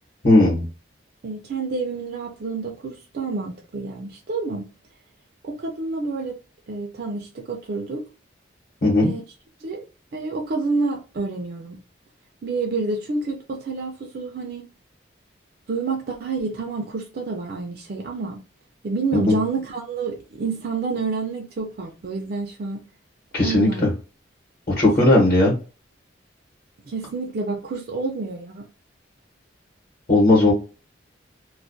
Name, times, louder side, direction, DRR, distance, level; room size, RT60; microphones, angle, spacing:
voice 1, 0.2-0.7 8.8-9.1 19.1-19.3 23.3-23.9 24.7-25.5 30.1-30.5, left 2 dB, 50° left, 0.9 m, -17 dB
voice 2, 1.2-4.7 5.4-6.4 6.7-8.1 9.0-9.2 9.6-9.8 10.1-11.8 12.4-14.7 15.7-18.4 18.8-22.8 23.4-23.9 24.8-25.3 26.8-28.7, right 4 dB, 50° right, 0.4 m, -28 dB
2.3 x 2.1 x 2.5 m
head